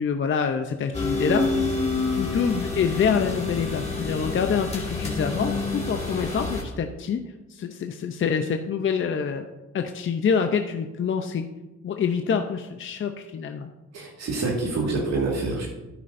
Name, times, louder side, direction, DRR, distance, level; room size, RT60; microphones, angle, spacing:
voice 1, 0.0-1.6 2.2-7.2 7.5-9.5 9.7-11.5 11.8-13.7, left 6 dB, 40° left, 6 dB, 0.7 m, -26 dB
sound 1, 0.9-6.6, left 3 dB, 20° left, 2.2 m, -28 dB
voice 2, 13.9-15.7, right 3 dB, 60° right, -2 dB, 2.0 m, -26 dB
11.0 x 9.2 x 2.6 m, 1.1 s
cardioid pair, 90°, 30 cm